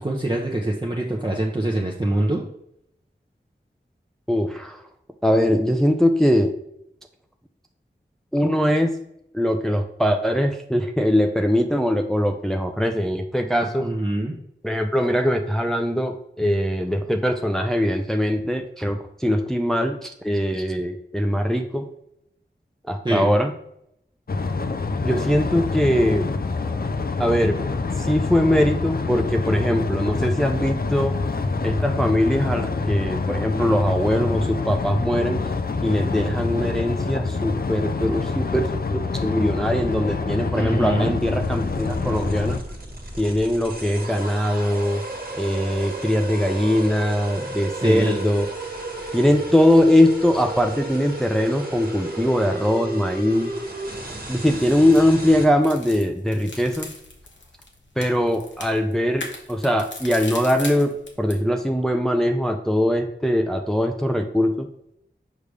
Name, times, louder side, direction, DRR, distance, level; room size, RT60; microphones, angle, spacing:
voice 1, 0.0-2.4 13.8-14.3 23.0-23.3 40.5-41.2 47.8-48.3, right 1 dB, 25° right, -2 dB, 0.9 m, -24 dB
voice 2, 4.3-4.8 5.2-6.5 8.3-8.9 9.3-13.9 14.6-21.8 22.9-23.5 25.0-26.3 27.2-27.6 28.0-31.2 31.6-35.4 35.8-42.6 43.2-45.0 45.4-48.5 49.1-53.5 54.3-56.9 58.0-64.7, equal, ahead, 4 dB, 0.6 m, -21 dB
sound 1, 24.3-42.6, left 4 dB, 55° left, 0.5 m, -26 dB
sound 2, 41.2-55.4, right 1 dB, 50° right, 1.6 m, -33 dB
sound 3, 54.4-61.4, left 2 dB, 80° left, 1.2 m, -40 dB
6.6 x 5.1 x 3.4 m, 0.74 s
wide cardioid pair, 55°, 19 cm